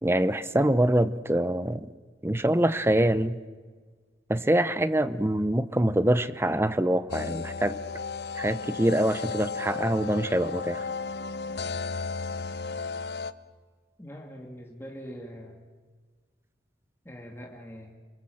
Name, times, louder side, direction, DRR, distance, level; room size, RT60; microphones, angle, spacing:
voice 1, 0.0-1.8 2.2-3.4 4.3-7.8 8.3-10.9, right 1 dB, 15° right, 12 dB, 0.8 m, -25 dB
sound 1, 7.1-13.3, left 4 dB, 70° left, 0.9 m, -34 dB
voice 2, 14.0-15.6 17.0-17.9, equal, 15° left, -1 dB, 2.5 m, -43 dB
27.5 x 23.5 x 7.9 m, 1.5 s
head